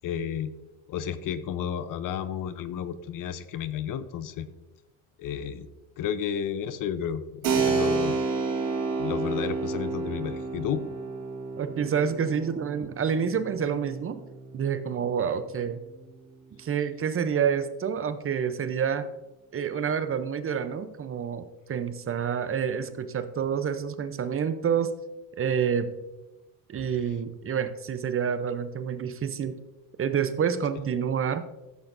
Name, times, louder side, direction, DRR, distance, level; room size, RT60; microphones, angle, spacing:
voice 1, 0.0-0.5 0.9-4.5 5.2-5.7 6.0-8.2 9.0-10.8 26.8-26.9, left 9 dB, 60° left, 13 dB, 0.7 m, -32 dB
Keyboard (musical), 7.4-15.8, right 4 dB, 60° right, 3.4 m, -31 dB
voice 2, 11.6-14.2 14.5-15.8 16.6-19.1 19.5-24.9 25.4-25.9 26.7-29.6 30.0-31.4, right 7 dB, 35° right, 11 dB, 0.6 m, -28 dB
12.5 x 7.8 x 2.6 m, 1.0 s
supercardioid pair, 90°, 37 cm